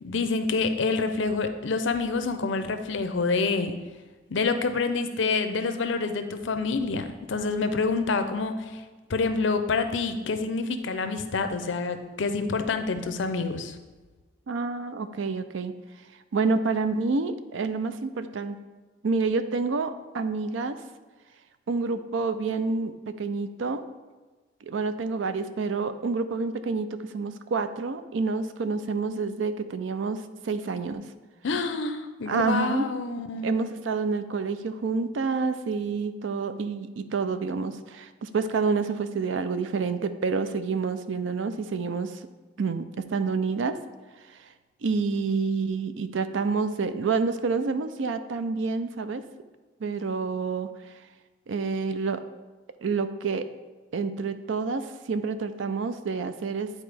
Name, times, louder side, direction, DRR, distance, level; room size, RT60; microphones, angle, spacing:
voice 1, 0.0-3.7 4.3-8.8 9.1-13.8 31.4-33.5, left 4 dB, 80° left, 8 dB, 0.6 m, -27 dB
voice 2, 14.5-15.7 16.3-18.6 19.0-20.8 21.7-23.8 24.6-31.0 32.3-42.2 42.6-43.8 44.8-49.2 49.8-50.7 51.5-52.2 52.8-53.5 53.9-56.7, right 4 dB, 85° right, 11 dB, 0.5 m, -28 dB
9.8 x 4.2 x 3.4 m, 1.3 s
head